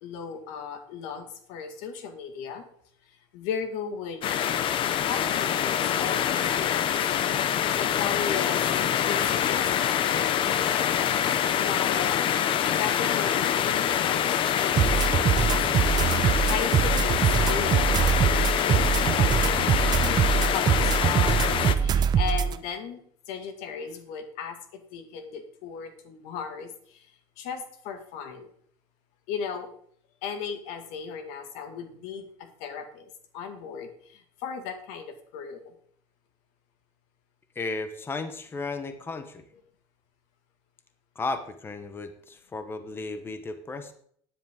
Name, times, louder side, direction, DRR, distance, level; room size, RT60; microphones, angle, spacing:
voice 1, 0.0-2.7 3.1-4.3 5.1-6.8 7.8-11.1 11.5-12.3 12.8-14.8 15.1-15.7 16.1-27.1 27.4-28.5 29.3-29.7 30.2-35.7, left 6 dB, 85° left, 7 dB, 1.9 m, -37 dB
sound 1, 4.2-21.8, left 9 dB, 45° left, 0.7 m, -25 dB
sound 2, 14.8-22.6, right 8 dB, 35° right, 0.7 m, -23 dB
voice 2, 37.5-39.4 41.1-43.9, left 3 dB, 20° left, 9 dB, 1.0 m, -34 dB
12.5 x 10.0 x 3.7 m, 0.62 s
cardioid pair, 135°, 12 cm